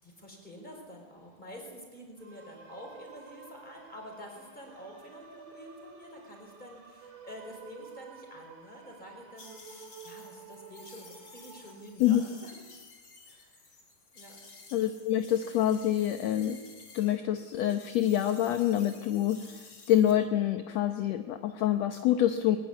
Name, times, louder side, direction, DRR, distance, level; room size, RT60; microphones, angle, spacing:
voice 1, 0.0-12.5 13.3-13.8 14.1-14.4, equal, 10° left, 1 dB, 5.4 m, -48 dB
sound 1, 2.2-11.8, right 5 dB, 65° right, 4.9 m, -51 dB
sound 2, 9.4-17.2 17.4-20.1, left 3 dB, 40° left, 4.1 m, -53 dB
voice 2, 14.7-16.6 16.9-19.4 19.9-22.6, left 11 dB, 70° left, 8 dB, 1.7 m, -26 dB
21.5 x 20.5 x 8.5 m, 1.4 s
omnidirectional pair, 3.9 m